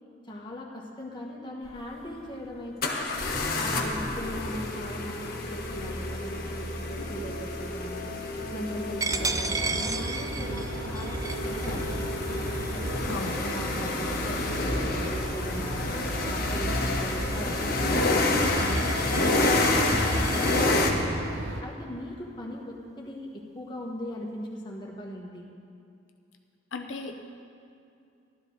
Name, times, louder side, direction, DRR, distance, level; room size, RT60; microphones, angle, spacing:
voice 1, 0.3-3.1 3.6-8.1 8.5-12.0 12.7-15.9 16.2-21.1 21.6-25.5, equal, 25° left, -3 dB, 1.6 m, -39 dB
sound 1, 1.6-1.7 2.8-20.9, left 2 dB, 50° left, 1.2 m, -29 dB
Coin (dropping), 9.0-14.4 14.9-15.1 15.5-20.6, right 4 dB, 20° right, 0.4 m, -36 dB
sound 2, 9.1-21.6, right 2 dB, 75° right, 0.9 m, -35 dB
voice 2, 26.7-27.3, left 3 dB, 85° left, 4 dB, 0.7 m, -36 dB
15.5 x 12.0 x 4.0 m, 2.5 s
head